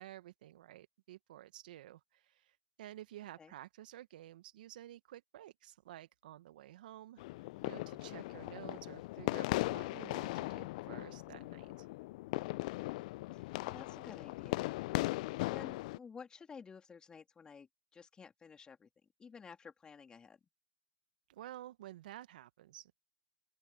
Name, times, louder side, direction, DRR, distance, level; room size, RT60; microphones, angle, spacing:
voice 1, 0.0-11.9 21.3-23.1, right 13 dB, 65° right, 1.1 m, -52 dB
sound 1, 7.2-16.0, left 20 dB, 55° left, 0.4 m, -38 dB
voice 2, 13.3-15.1 15.5-18.9 19.2-20.4, left 6 dB, 15° left, 3.1 m, -53 dB
open air
hypercardioid pair, 110°, 5 cm